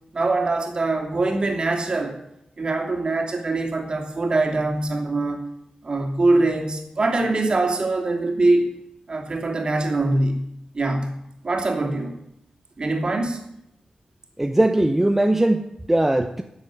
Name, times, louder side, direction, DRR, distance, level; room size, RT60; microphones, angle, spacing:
voice 1, 0.1-2.2 2.6-5.4 5.8-8.7 9.1-10.4 10.7-11.1 11.4-12.2 12.8-13.4, right 2 dB, 45° right, 1 dB, 3.0 m, -23 dB
voice 2, 14.4-16.4, right 1 dB, 10° right, 6 dB, 0.8 m, -20 dB
13.0 x 7.9 x 9.3 m, 0.81 s
wide cardioid pair, 120°, 2 cm